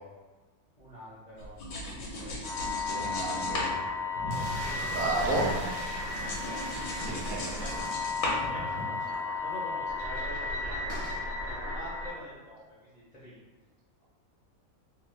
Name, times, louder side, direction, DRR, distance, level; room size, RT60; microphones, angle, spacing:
voice 1, 0.8-1.5 1.9-2.4 4.1-5.3 6.2-6.9 7.4-7.8 8.3-13.4, equal, 55° left, -9 dB, 0.4 m, -46 dB
sound 1, 1.4-5.1 5.4-9.1, left 1 dB, 75° left, 1.1 m, -37 dB
sound 2, 2.4-12.1, left 3 dB, 90° right, 1.4 m, -34 dB
voice 2, 2.8-3.8 4.9-5.5 7.0-7.6, right 2 dB, 70° right, -2 dB, 1.0 m, -32 dB
sound 3, 4.3-8.5 8.8-8.9 9.1-9.2 10.9-11.2, right 2 dB, 50° right, 0.6 m, -42 dB
3.1 x 2.2 x 3.1 m, 1.3 s
omnidirectional pair, 1.5 m